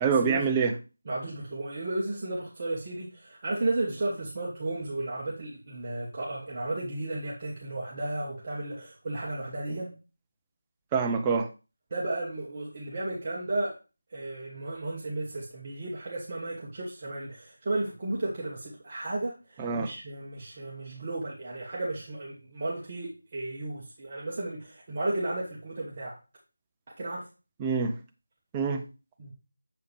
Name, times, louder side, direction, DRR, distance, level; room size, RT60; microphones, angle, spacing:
voice 1, 0.0-0.7 10.9-11.5 19.6-19.9 27.6-28.0 28.5-28.9, right 5 dB, 10° right, 0.5 m, -26 dB
voice 2, 1.1-9.9 11.9-13.7 14.1-26.2 27.0-27.3 29.2-29.3, right 2 dB, 25° right, 1.1 m, -34 dB
7.0 x 4.8 x 3.1 m
figure-of-eight pair, 175°, 0 cm